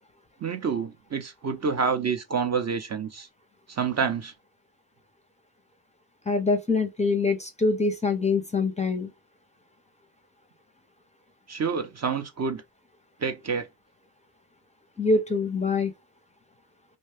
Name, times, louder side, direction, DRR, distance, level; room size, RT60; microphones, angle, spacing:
voice 1, 0.4-3.3 3.7-4.3 11.5-12.6 13.2-13.7, right 6 dB, 35° right, 0.6 m, -28 dB
voice 2, 6.3-9.1 15.0-15.9, left 3 dB, 15° left, 0.6 m, -24 dB
2.7 x 2.2 x 3.3 m
cardioid pair, 80°, 46 cm